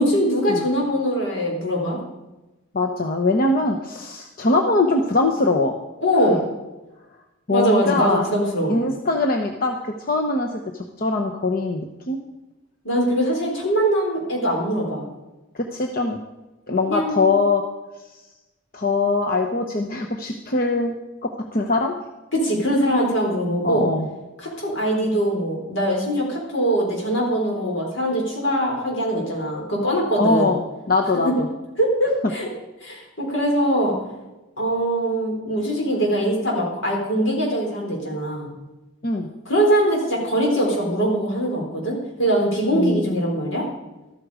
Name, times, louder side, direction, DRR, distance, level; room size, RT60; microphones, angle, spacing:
voice 1, 0.0-2.0 6.0-6.5 7.5-8.8 12.8-15.0 16.8-17.3 22.3-23.9 24.4-30.5 31.2-31.3 31.8-32.5 32.8-34.0 34.6-38.5 39.5-43.6, right 1 dB, 75° left, -1 dB, 4.5 m, -22 dB
voice 2, 2.7-5.8 6.2-6.4 7.5-8.2 8.7-10.6 11.0-12.2 15.5-16.2 16.7-17.6 18.0-18.2 18.7-21.0 21.2-22.0 23.6-24.1 30.2-30.6 30.9-31.5 39.0-39.3 42.7-43.2, left 3 dB, 50° left, 2 dB, 1.0 m, -22 dB
13.5 x 13.0 x 5.0 m, 1.1 s
head